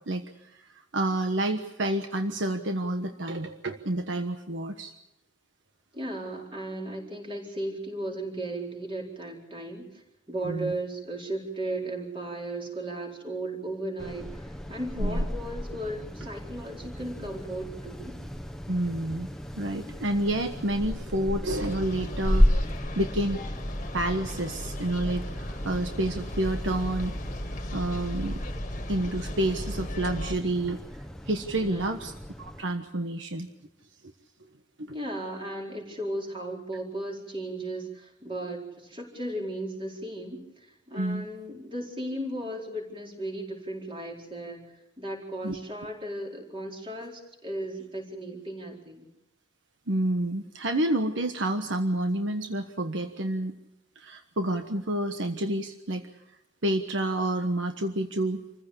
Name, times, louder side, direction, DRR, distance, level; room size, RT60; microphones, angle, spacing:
voice 1, 0.5-4.9 10.4-10.7 15.0-15.2 18.7-19.3 19.6-23.4 23.9-27.1 27.7-28.4 28.9-30.8 31.3-33.5 34.8-35.0 40.9-41.3 45.4-45.6 49.9-53.5 53.9-56.0 56.6-58.4, right 1 dB, 80° right, 6 dB, 1.3 m, -29 dB
voice 2, 5.9-18.2 31.5-32.0 34.9-44.7 45.0-49.1, right 1 dB, 30° right, 0 dB, 4.6 m, -36 dB
sound 1, 14.0-32.6, equal, 5° left, 1.1 m, -33 dB
sound 2, 21.5-30.3, left 1 dB, 40° left, 1.8 m, -35 dB
27.0 x 15.5 x 8.6 m, 0.88 s
head